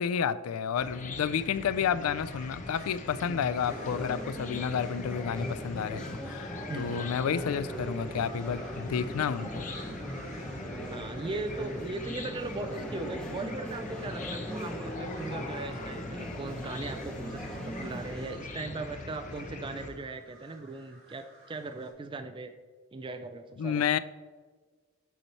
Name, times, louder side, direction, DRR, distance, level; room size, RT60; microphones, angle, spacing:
voice 1, 0.0-9.7 23.6-24.0, left 7 dB, 90° left, 16 dB, 0.4 m, -30 dB
Chicken rooster / Cricket, 0.8-19.9, left 2 dB, 35° left, 0.7 m, -42 dB
sound 1, 2.1-21.9, right 1 dB, 65° right, 2.0 m, -55 dB
sound 2, 3.7-18.3, equal, 5° left, 0.7 m, -40 dB
voice 2, 6.7-7.1 10.9-22.5 22.9-23.8, right 3 dB, 25° right, 8 dB, 0.3 m, -39 dB
8.1 x 4.5 x 4.2 m, 1.4 s
head